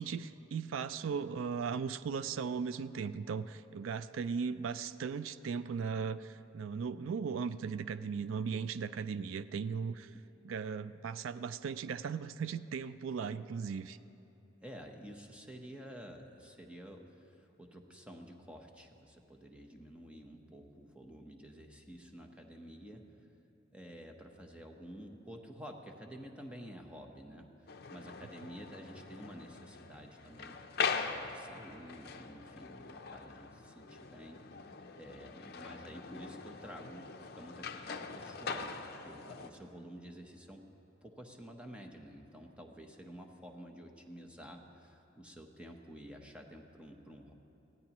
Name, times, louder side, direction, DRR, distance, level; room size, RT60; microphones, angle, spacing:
voice 1, 0.0-10.1 10.4-14.0, right 6 dB, 80° right, 14 dB, 0.4 m, -37 dB
voice 2, 14.6-23.3 23.7-30.6 31.0-38.8 39.0-40.6 41.0-47.3, equal, 5° right, 2 dB, 0.9 m, -50 dB
sound 1, 27.7-39.5, left 5 dB, 50° left, 0.6 m, -42 dB
22.5 x 16.0 x 3.0 m, 2.9 s
head